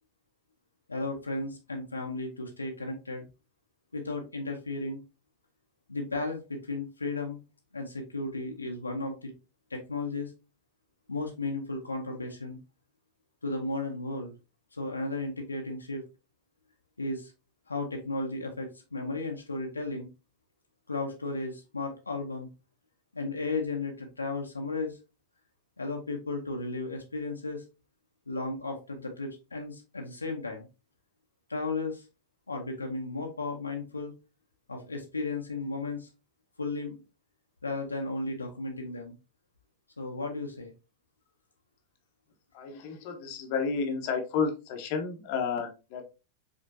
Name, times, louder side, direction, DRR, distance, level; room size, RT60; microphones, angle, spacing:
voice 1, 0.9-3.2 3.9-5.0 5.9-7.4 7.7-9.3 9.7-10.3 11.1-12.6 13.4-14.3 14.7-16.0 17.0-17.3 17.7-20.1 20.9-22.5 23.1-25.0 25.8-27.6 28.3-30.7 31.5-32.0 32.5-34.1 34.7-36.1 36.6-37.0 37.6-39.1 40.0-40.7, left 2 dB, 80° left, 2 dB, 0.9 m, -34 dB
voice 2, 42.5-46.0, left 5 dB, 45° left, 3 dB, 1.0 m, -31 dB
5.2 x 3.6 x 2.7 m, 0.29 s
figure-of-eight pair, 90°, 0 cm